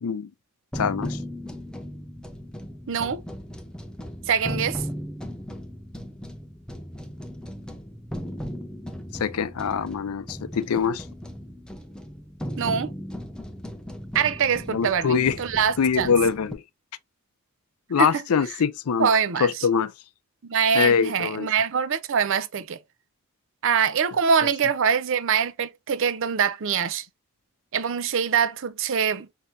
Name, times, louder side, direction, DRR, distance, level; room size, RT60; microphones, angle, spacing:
voice 1, 0.7-1.2 9.1-11.0 14.7-15.4 15.8-16.6 17.9-19.1 19.4-19.9 20.7-21.5, left 6 dB, 85° left, 0.5 m, -23 dB
sound 1, 0.7-16.5, equal, 5° left, 0.6 m, -37 dB
voice 2, 2.9-3.2 4.3-4.8 12.6-12.9 14.1-16.1 18.0-18.2 19.0-19.5 20.4-22.8 23.6-27.1 27.7-29.3, right 7 dB, 60° right, 0.5 m, -24 dB
6.2 x 2.8 x 2.5 m
head